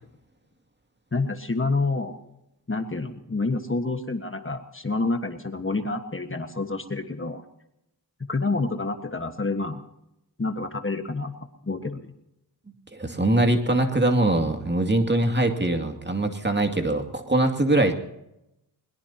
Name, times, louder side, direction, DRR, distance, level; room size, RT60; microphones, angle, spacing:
voice 1, 1.1-2.2 2.7-7.4 8.3-9.8 10.4-11.3 11.6-12.1, left 3 dB, 30° left, 7 dB, 1.5 m, -28 dB
voice 2, 12.9-17.9, right 2 dB, 25° right, 4 dB, 2.4 m, -22 dB
21.5 x 21.5 x 2.9 m, 0.86 s
wide cardioid pair, 70°, 40 cm